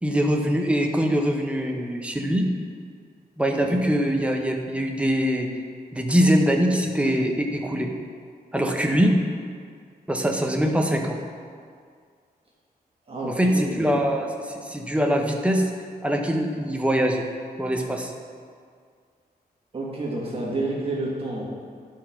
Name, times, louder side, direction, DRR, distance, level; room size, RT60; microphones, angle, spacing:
voice 1, 0.0-2.5 3.4-5.5 5.9-7.9 8.5-9.2 10.1-11.2 13.2-15.7 16.0-17.2 17.6-18.1, equal, 5° right, 2 dB, 0.6 m, -23 dB
voice 2, 13.1-14.0 19.7-21.4, right 2 dB, 35° right, -4 dB, 1.5 m, -29 dB
9.7 x 4.5 x 5.7 m, 2.1 s
wide cardioid pair, 175°, 17 cm